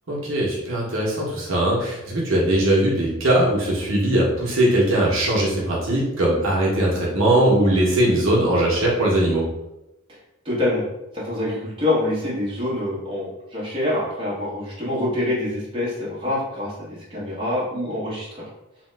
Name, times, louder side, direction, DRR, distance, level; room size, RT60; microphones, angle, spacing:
voice 1, 0.1-9.5, right 1 dB, 65° right, -4 dB, 0.7 m, -20 dB
voice 2, 10.4-10.8 11.1-18.5, left 1 dB, 25° right, -7 dB, 0.8 m, -26 dB
2.9 x 2.1 x 3.2 m, 0.92 s
head